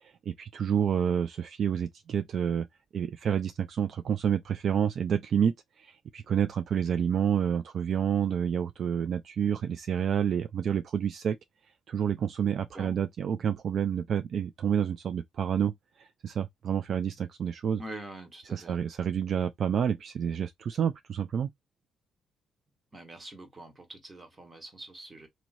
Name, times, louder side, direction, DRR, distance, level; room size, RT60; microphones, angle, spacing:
voice 1, 0.0-2.7 2.9-11.4 11.9-17.8 18.5-21.5, right 8 dB, 60° right, 0.3 m, -29 dB
voice 2, 17.8-18.8 22.9-25.3, right 1 dB, 25° right, 1.3 m, -45 dB
3.1 x 2.7 x 2.5 m
cardioid pair, 90°, 0 cm